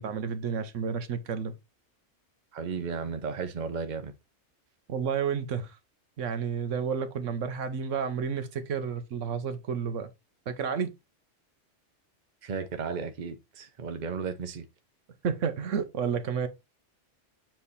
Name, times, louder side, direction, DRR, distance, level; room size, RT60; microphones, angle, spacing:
voice 1, 0.0-1.5 4.9-5.8 6.2-10.1 10.5-10.9 15.2-16.5, right 6 dB, 85° right, 1.2 m, -31 dB
voice 2, 2.5-4.1 12.4-14.7, right 5 dB, 40° right, 0.9 m, -34 dB
7.6 x 3.4 x 4.1 m
omnidirectional pair, 1.3 m